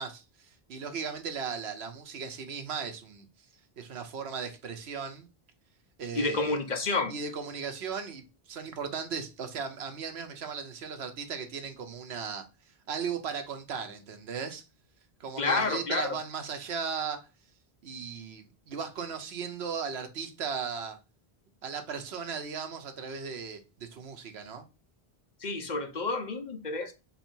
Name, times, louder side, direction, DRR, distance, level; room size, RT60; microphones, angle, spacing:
voice 1, 0.0-3.3 3.8-5.3 6.0-6.6 7.1-12.5 12.9-14.6 15.2-17.2 17.8-21.0 21.6-24.6, right 6 dB, 85° right, 1.1 m, -37 dB
voice 2, 6.1-7.1 15.4-16.2 25.4-26.9, left 3 dB, 45° left, 0.9 m, -29 dB
4.1 x 2.8 x 4.4 m
omnidirectional pair, 1.1 m